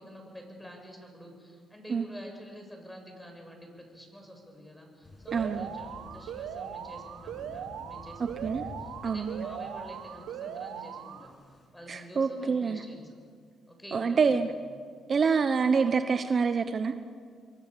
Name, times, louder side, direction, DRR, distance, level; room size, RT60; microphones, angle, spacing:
voice 1, 0.0-11.3 11.7-13.1 13.7-14.6, equal, 5° left, 2 dB, 7.6 m, -47 dB
Thunder / Rain, 5.0-11.7, left 2 dB, 30° left, 7.0 m, -51 dB
voice 2, 5.3-5.7 8.4-8.6 9.0-9.4 11.9-12.8 13.9-14.5 15.1-16.9, right 5 dB, 45° right, 9 dB, 1.0 m, -26 dB
Alarm, 5.3-11.3, right 8 dB, 90° right, 1.6 m, -40 dB
28.0 x 22.5 x 6.9 m, 2.1 s
cardioid pair, 90°, 0 cm